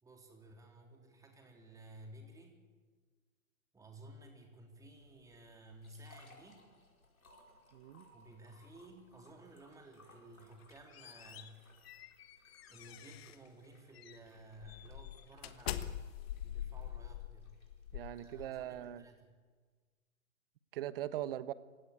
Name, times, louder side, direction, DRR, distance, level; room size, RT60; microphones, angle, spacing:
voice 1, 0.0-2.6 3.7-6.6 8.1-11.6 12.7-16.0 16.4-17.5 18.2-19.4, right 1 dB, 10° right, 2 dB, 3.6 m, -55 dB
sound 1, 4.8-19.0, left 2 dB, 90° left, 5.1 m, -65 dB
voice 2, 7.7-8.1 17.9-19.0 20.7-21.5, right 12 dB, 40° right, 15 dB, 1.1 m, -40 dB
sound 2, 10.5-13.5 13.9-14.2 14.6-18.8, left 11 dB, 45° left, 1.4 m, -44 dB
27.5 x 17.0 x 8.7 m, 1.5 s
hypercardioid pair, 130°, 41 cm